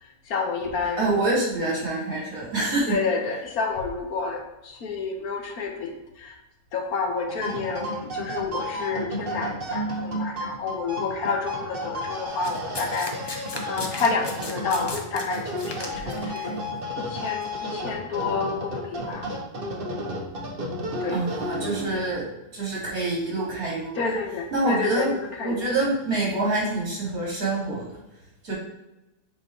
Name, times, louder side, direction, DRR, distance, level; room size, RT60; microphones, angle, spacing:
voice 1, 0.3-1.2 2.9-6.4 6.7-16.6 17.0-19.3 21.0-21.2 21.9-22.0 24.0-25.7, left 4 dB, 70° left, 3 dB, 1.4 m, -29 dB
voice 2, 1.0-2.9 21.1-22.2 22.5-24.1 24.5-25.1 25.4-27.9 28.4-28.5, right 2 dB, 70° right, -6 dB, 2.9 m, -26 dB
sound 1, 7.2-22.1, equal, 40° right, 1.0 m, -32 dB
Domestic sounds home sounds, 12.4-16.4 17.3-17.4, left 2 dB, 35° left, 0.4 m, -36 dB
7.9 x 3.1 x 4.2 m, 0.97 s
omnidirectional pair, 1.6 m